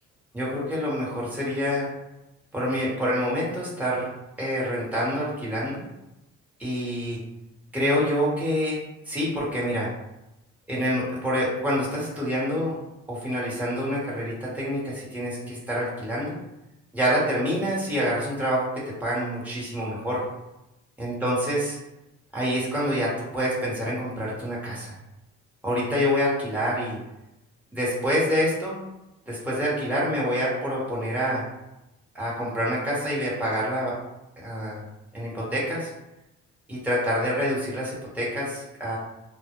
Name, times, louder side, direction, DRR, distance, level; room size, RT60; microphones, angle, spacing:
voice 1, 0.3-1.9 2.5-4.1 4.4-5.8 6.6-7.2 7.7-9.9 10.7-12.7 13.1-16.4 16.9-20.2 21.0-21.8 22.3-24.9 25.6-27.0 27.7-28.8 29.3-31.4 32.1-34.0 34.4-34.8 35.1-35.9 36.7-39.0, equal, 5° right, -7 dB, 1.0 m, -27 dB
2.3 x 2.0 x 2.9 m, 0.92 s
cardioid pair, 90°, 30 cm